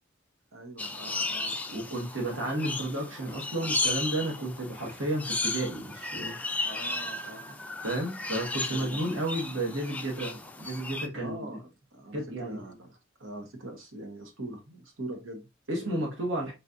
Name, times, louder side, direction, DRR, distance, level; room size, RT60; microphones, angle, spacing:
voice 1, 0.5-1.6 6.6-7.6 8.7-9.1 11.1-16.1 16.4-16.5, right 1 dB, 90° right, 1.1 m, -43 dB
sound 1, 0.8-11.1, left 3 dB, 10° left, 0.3 m, -34 dB
voice 2, 1.7-6.4 7.8-11.4 12.1-12.6 15.7-16.5, right 1 dB, 75° right, 1.4 m, -32 dB
4.2 x 4.0 x 2.6 m
head